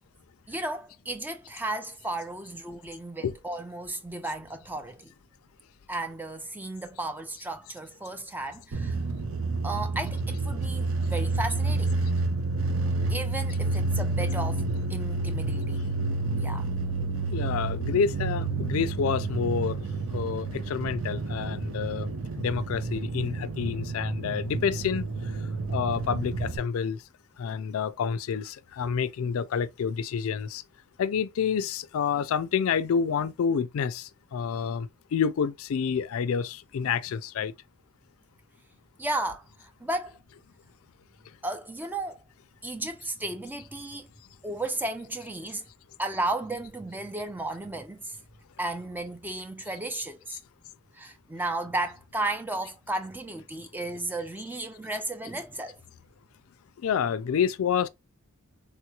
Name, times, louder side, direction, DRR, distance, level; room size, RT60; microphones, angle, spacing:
voice 1, 0.5-5.1 5.9-9.0 9.6-12.0 13.1-15.9 16.3-16.7 39.0-40.2 41.4-42.2 42.6-44.1 44.4-45.7 46.0-48.1 48.6-50.4 50.9-55.8, right 2 dB, 10° right, 0.3 m, -34 dB
sound 1, 8.7-26.6, right 3 dB, 65° right, 0.5 m, -29 dB
voice 2, 17.3-19.8 20.1-22.1 22.4-25.0 25.7-27.0 27.4-30.6 31.0-37.5 56.8-57.9, left 7 dB, 70° left, 0.3 m, -28 dB
3.4 x 2.9 x 2.3 m
head